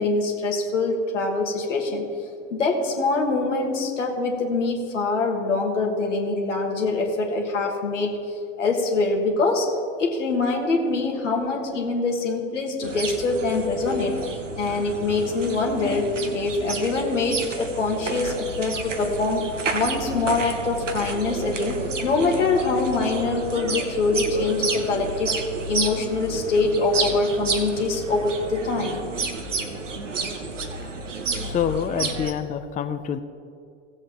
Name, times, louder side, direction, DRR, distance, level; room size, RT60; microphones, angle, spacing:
voice 1, 0.0-2.0 2.5-8.1 8.6-9.7 10.0-14.2 14.6-25.4 25.7-29.0, left 3 dB, 80° left, 1 dB, 1.6 m, -24 dB
sound 1, 12.8-32.3, right 3 dB, 90° right, 0.9 m, -31 dB
voice 2, 31.4-33.2, left 8 dB, 20° left, 9 dB, 0.5 m, -27 dB
17.0 x 7.6 x 3.1 m, 2.5 s
figure-of-eight pair, 70°, 36 cm